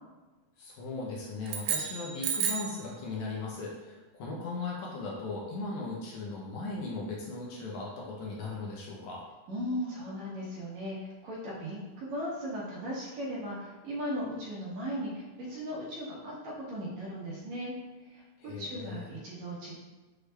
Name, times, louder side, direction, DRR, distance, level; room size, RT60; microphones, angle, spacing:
voice 1, 0.6-9.2 18.4-19.1, left 3 dB, 75° left, -3 dB, 2.0 m, -38 dB
sound 1, 1.4-2.8, right 7 dB, 90° right, 2.1 m, -32 dB
voice 2, 9.5-17.7 18.1-19.7, equal, 65° right, -5 dB, 2.2 m, -37 dB
6.4 x 2.4 x 3.3 m, 1.2 s
omnidirectional pair, 3.6 m